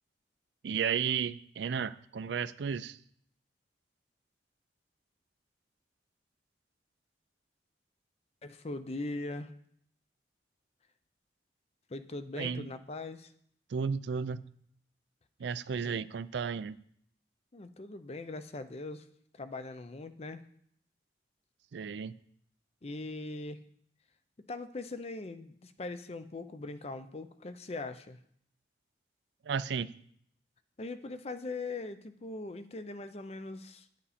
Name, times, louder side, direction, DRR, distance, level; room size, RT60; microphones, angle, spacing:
voice 1, 0.6-3.0 12.4-12.7 13.7-14.4 15.4-16.8 21.7-22.1 29.4-29.9, right 6 dB, 75° right, 0.4 m, -33 dB
voice 2, 8.4-9.5 11.9-13.3 15.8-16.1 17.5-19.1 19.3-20.4 22.8-23.6 24.5-28.2 30.8-33.9, left 2 dB, 35° left, 0.5 m, -41 dB
9.5 x 8.2 x 4.2 m
head